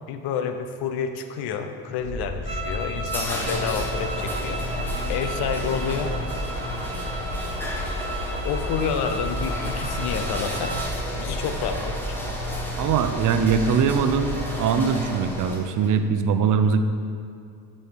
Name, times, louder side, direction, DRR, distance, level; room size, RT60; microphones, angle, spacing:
voice 1, 0.1-4.6 5.0-6.1 8.4-12.2, left 6 dB, 70° left, 8 dB, 0.9 m, -29 dB
sound 1, 2.0-14.6, equal, 55° left, 2.1 m, -33 dB
sound 2, 2.4-10.9, right 2 dB, 15° right, 1.2 m, -35 dB
sound 3, 2.9-16.0, equal, 5° left, 1.4 m, -33 dB
voice 2, 12.8-16.8, right 6 dB, 50° right, 9 dB, 0.7 m, -22 dB
8.6 x 5.5 x 4.7 m, 2.4 s
cardioid pair, 110°, 40 cm